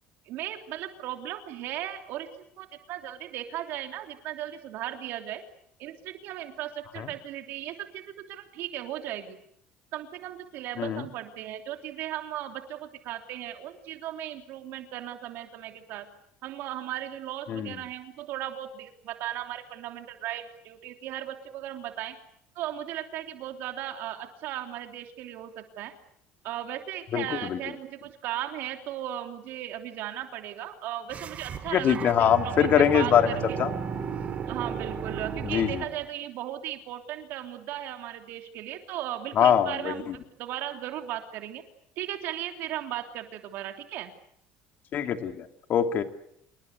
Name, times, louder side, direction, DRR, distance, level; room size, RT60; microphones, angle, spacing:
voice 1, 0.2-2.3 2.6-5.4 5.8-9.4 9.9-16.1 16.4-22.2 22.5-25.9 26.4-33.6 34.5-41.6 42.0-44.1, right 12 dB, 65° right, 6 dB, 3.1 m, -36 dB
voice 2, 27.1-27.6 31.7-33.3 33.6-33.7 35.4-35.8 39.4-40.2 44.9-46.0, left 9 dB, 50° left, 7 dB, 2.9 m, -23 dB
sound 1, 31.1-36.1, right 7 dB, 40° right, 3.1 m, -34 dB
28.0 x 22.5 x 8.3 m, 0.71 s
cardioid pair, 115°, 4 cm